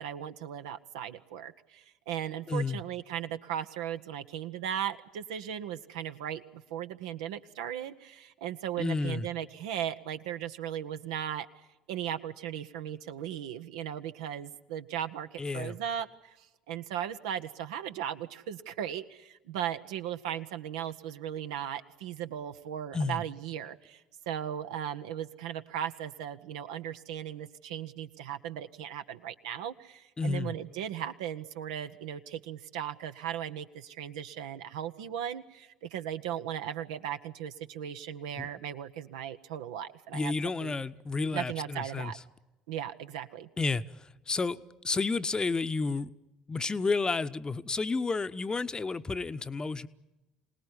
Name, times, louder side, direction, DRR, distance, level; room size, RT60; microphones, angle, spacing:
voice 1, 0.0-11.5 11.9-40.7 41.3-42.2 42.7-43.5, right 10 dB, 70° right, 1.0 m, -37 dB
voice 2, 2.5-2.8 8.8-9.3 15.4-15.8 22.9-23.2 30.2-30.5 38.4-38.5 40.1-42.1 43.6-46.1 46.5-49.9, left 4 dB, 20° left, 1.0 m, -31 dB
25.5 x 19.0 x 9.8 m
figure-of-eight pair, 60°, 4 cm